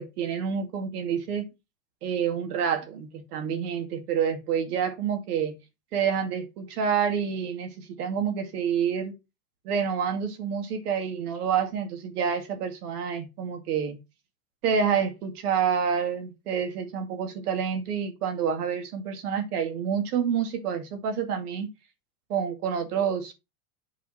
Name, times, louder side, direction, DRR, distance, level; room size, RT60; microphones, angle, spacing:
voice 1, 0.0-1.5 2.0-5.6 5.9-9.1 9.6-14.0 14.6-21.7 22.3-23.3, right 7 dB, 80° right, 2.4 m, -28 dB
8.5 x 4.3 x 4.3 m
supercardioid pair, 130°, 45 cm